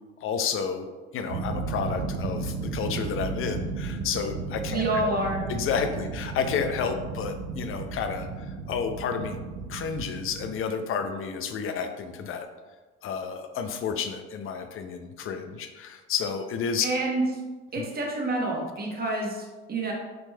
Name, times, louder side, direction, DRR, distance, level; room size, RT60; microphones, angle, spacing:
voice 1, 0.2-5.1 5.5-9.4 9.7-12.5 13.0-16.9 17.8-17.9, left 6 dB, 45° left, 7 dB, 0.6 m, -31 dB
sound 1, 1.3-10.5, right 4 dB, 75° right, 0.7 m, -34 dB
voice 2, 4.7-5.4 16.8-17.2 17.7-19.9, right 2 dB, 30° right, -1 dB, 1.1 m, -28 dB
6.3 x 3.0 x 2.3 m, 1.3 s
hypercardioid pair, 75°, 31 cm